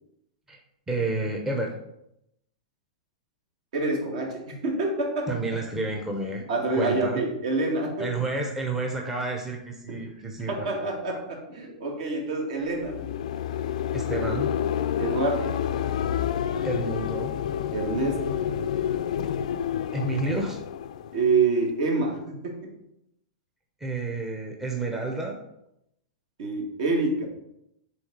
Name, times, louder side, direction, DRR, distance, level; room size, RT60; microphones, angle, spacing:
voice 1, 0.9-1.7 5.3-6.5 6.7-7.2 8.0-10.9 13.9-14.5 16.6-17.3 19.9-20.6 23.8-25.4, right 2 dB, 10° right, 0 dB, 0.7 m, -30 dB
voice 2, 3.7-5.3 6.5-8.1 9.9-10.0 10.5-13.0 15.0-15.6 17.7-18.4 21.1-22.7 26.4-27.3, right 3 dB, 60° right, 1 dB, 2.0 m, -27 dB
sound 1, 12.7-21.7, left 9 dB, 70° left, 0.4 m, -29 dB
7.0 x 3.6 x 5.2 m, 0.81 s
hypercardioid pair, 145°, 4 cm